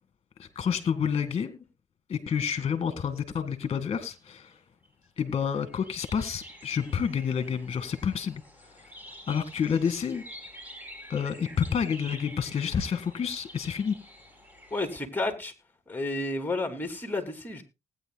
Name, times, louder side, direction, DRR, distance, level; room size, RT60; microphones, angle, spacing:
voice 1, 0.4-1.6 2.1-4.5 5.2-8.4 9.3-10.2 11.1-14.0, left 7 dB, 45° left, 1.8 m, -29 dB
sound 1, 4.5-4.6 4.8-15.0, equal, 15° right, 4.5 m, -48 dB
voice 2, 14.7-15.5 15.9-17.6, left 2 dB, 15° left, 3.0 m, -31 dB
19.5 x 9.3 x 2.3 m
supercardioid pair, 65°, 13 cm